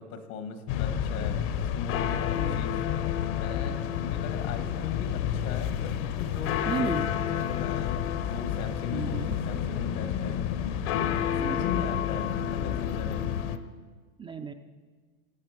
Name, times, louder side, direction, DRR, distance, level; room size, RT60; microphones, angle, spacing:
voice 1, 0.0-2.8 3.2-10.4 10.9-13.3, left 6 dB, 75° left, 7 dB, 1.9 m, -39 dB
sound 1, 0.7-13.6, left 9 dB, 55° left, 1.0 m, -29 dB
voice 2, 2.3-2.7 6.7-7.1 8.9-9.4 11.3-11.7 14.2-14.5, right 5 dB, 15° right, 5 dB, 0.4 m, -34 dB
16.5 x 9.0 x 5.1 m, 1.5 s
hypercardioid pair, 110°, 43 cm